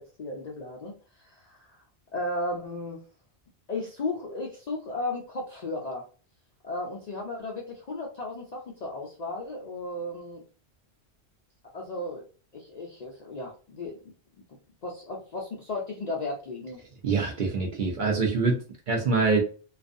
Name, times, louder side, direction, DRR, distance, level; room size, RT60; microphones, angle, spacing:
voice 1, 0.0-1.8 2.1-3.0 3.7-6.0 6.6-10.4 11.7-12.2 12.5-14.0 14.8-16.8, left 2 dB, 55° left, -2 dB, 0.4 m, -35 dB
voice 2, 17.0-19.4, right 4 dB, 60° right, 1 dB, 0.6 m, -25 dB
2.4 x 2.3 x 2.5 m, 0.38 s
omnidirectional pair, 1.2 m